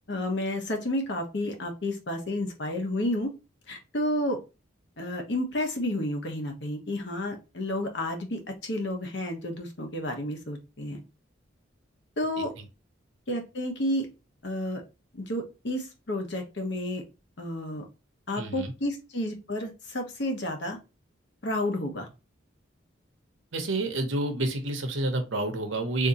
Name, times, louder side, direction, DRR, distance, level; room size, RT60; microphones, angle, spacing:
voice 1, 0.1-3.3 3.7-4.4 5.0-11.0 12.2-12.5 13.3-14.1 14.4-14.8 15.1-17.0 17.4-17.8 18.3-20.8 21.4-22.1, left 1 dB, 60° left, 3 dB, 0.9 m, -31 dB
voice 2, 18.4-18.7 23.5-26.1, right 2 dB, 80° right, 6 dB, 0.8 m, -28 dB
3.6 x 2.8 x 2.8 m, 0.28 s
head